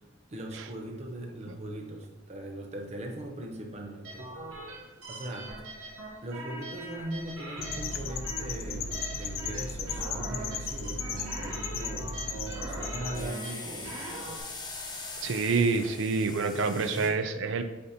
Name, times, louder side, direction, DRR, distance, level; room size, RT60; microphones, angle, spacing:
voice 1, 0.3-4.3 5.1-5.6 6.2-12.1 12.6-14.2 16.6-17.1, right 1 dB, 35° right, 2 dB, 0.7 m, -40 dB
sound 1, 4.0-14.4, right 2 dB, 90° right, 1.8 m, -42 dB
sound 2, 7.6-13.2, left 4 dB, 75° left, 0.5 m, -35 dB
sound 3, 13.1-17.1, left 3 dB, 20° left, 0.8 m, -42 dB
voice 2, 15.2-17.6, right 4 dB, 70° right, 8 dB, 0.5 m, -27 dB
8.4 x 2.9 x 4.2 m, 1.1 s
head